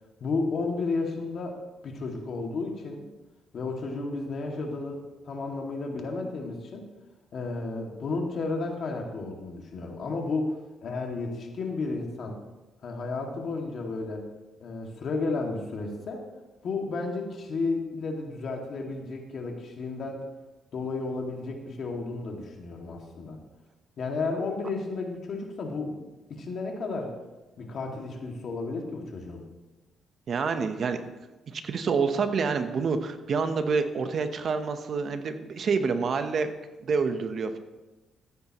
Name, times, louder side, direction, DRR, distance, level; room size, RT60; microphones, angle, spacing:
voice 1, 0.2-1.6 1.8-3.1 3.5-6.9 7.3-12.4 12.8-14.3 14.6-16.2 16.6-20.2 20.7-23.4 24.0-26.0 26.3-27.2 27.6-29.4, left 3 dB, 55° left, 1 dB, 2.1 m, -32 dB
voice 2, 30.3-31.0 31.5-36.5 36.8-37.6, right 5 dB, 55° right, 8 dB, 0.9 m, -27 dB
14.5 x 9.7 x 3.0 m, 1.1 s
cardioid pair, 90°, 0 cm